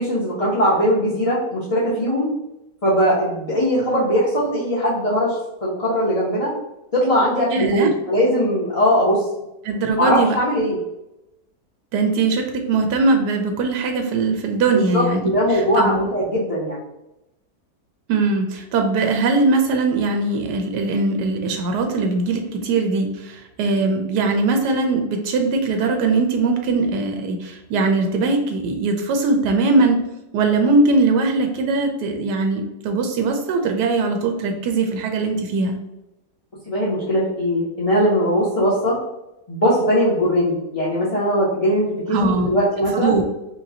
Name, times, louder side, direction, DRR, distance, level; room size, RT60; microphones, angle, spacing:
voice 1, 0.0-2.3 2.8-6.5 6.9-9.2 10.0-10.8 14.7-15.0 15.3-16.8 36.7-39.0 39.5-43.2, equal, 40° left, -7 dB, 0.5 m, -20 dB
voice 2, 7.5-7.9 9.6-10.3 11.9-15.2 15.5-16.0 18.1-30.0 30.3-35.8 42.1-42.6 42.9-43.2, right 3 dB, 90° right, 4 dB, 1.2 m, -20 dB
4.7 x 2.2 x 2.7 m, 0.91 s
omnidirectional pair, 1.7 m